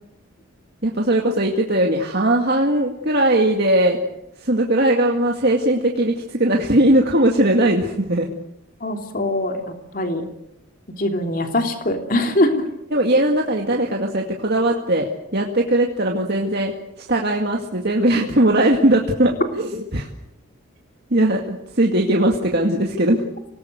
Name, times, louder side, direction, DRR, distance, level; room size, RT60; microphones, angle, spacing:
voice 1, 0.8-4.0 4.4-8.3 12.9-20.1 21.1-23.2, right 1 dB, 50° right, 1 dB, 2.1 m, -19 dB
voice 2, 8.8-9.6 9.9-10.2 11.0-12.6, left 1 dB, 40° left, 4 dB, 3.1 m, -22 dB
26.5 x 19.0 x 8.2 m, 0.83 s
head